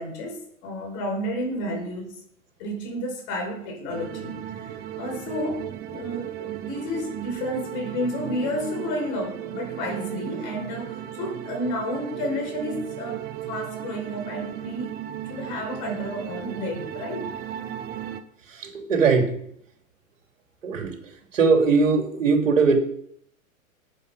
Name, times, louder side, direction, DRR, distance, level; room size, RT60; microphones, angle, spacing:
voice 1, 0.0-2.2 2.6-5.6 5.9-13.2 13.5-14.9 15.3-17.3, left 1 dB, 40° left, 3 dB, 4.8 m, -31 dB
sound 1, 3.9-18.2, right 11 dB, 25° right, 0.9 m, -35 dB
voice 2, 18.5-19.4 20.6-21.0 21.3-22.8, right 4 dB, 60° right, 4 dB, 3.1 m, -20 dB
12.5 x 8.7 x 5.2 m, 0.69 s
figure-of-eight pair, 100°, 42 cm